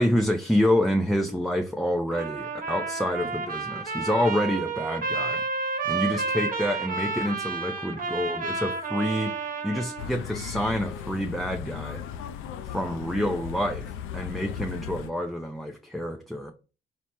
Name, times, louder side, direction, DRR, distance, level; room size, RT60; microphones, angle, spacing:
voice 1, 0.0-9.4 9.6-12.0 12.6-16.5, equal, ahead, 0.4 m, -27 dB
Trumpet, 2.1-10.1, right 4 dB, 45° right, 1.1 m, -31 dB
sound 1, 10.0-15.1, left 8 dB, 85° left, 0.4 m, -36 dB
4.3 x 2.1 x 4.5 m
cardioid pair, 90°, 20 cm